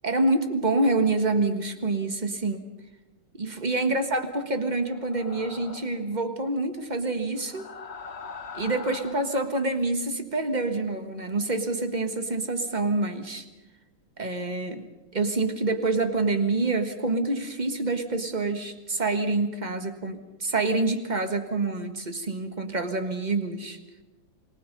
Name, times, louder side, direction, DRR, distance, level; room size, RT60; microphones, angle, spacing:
voice 1, 0.0-2.7 3.3-7.7 8.5-13.4 14.2-14.9 15.1-23.8, right 2 dB, 25° right, 7 dB, 1.5 m, -27 dB
sound 1, 4.9-6.1 7.3-9.5, left 5 dB, 40° left, 1.1 m, -42 dB
27.5 x 20.0 x 5.4 m, 1.1 s
omnidirectional pair, 2.4 m